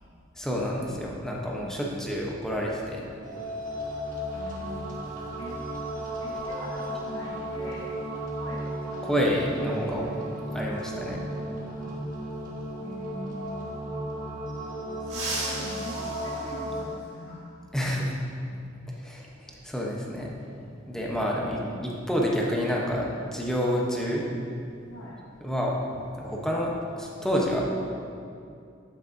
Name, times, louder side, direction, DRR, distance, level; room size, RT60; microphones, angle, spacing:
voice 1, 0.4-3.0 9.0-10.1 10.5-11.2 17.7-18.1 19.0-20.3 20.9-24.3 25.4-25.7 26.2-27.6, equal, 5° left, -3 dB, 0.9 m, -28 dB
voice 2, 1.5-2.1 4.3-5.0 5.4-5.6 6.2-7.9 8.4-8.6 8.9-9.2 10.0-11.2 11.6-11.9 12.8-13.7 14.9-17.4 18.5-18.6 24.9-25.2, equal, 75° left, -7 dB, 1.3 m, -42 dB
sound 1, 3.2-16.8, right 1 dB, 45° right, 1.4 m, -35 dB
sound 2, 15.0-17.4 19.1-19.2 20.4-20.5 22.1-22.3 22.6-22.9 23.3-25.5 25.8-26.0 26.5-26.9, right 2 dB, 65° right, 1.9 m, -38 dB
9.5 x 8.5 x 2.7 m, 2.4 s
head